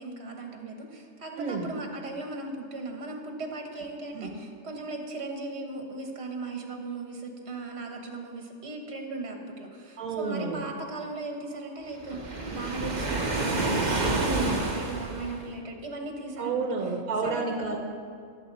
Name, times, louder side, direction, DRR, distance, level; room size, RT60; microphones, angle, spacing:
voice 1, 0.0-16.9 17.2-17.5, right 3 dB, 50° right, 3 dB, 1.6 m, -37 dB
voice 2, 1.4-1.7 4.1-4.3 10.0-10.6 14.2-14.5 16.4-17.8, right 4 dB, 75° right, 2 dB, 1.3 m, -30 dB
Waves surf, 12.0-15.5, right 2 dB, 35° right, 1.2 m, -29 dB
19.5 x 7.6 x 4.1 m, 2.2 s
omnidirectional pair, 1.4 m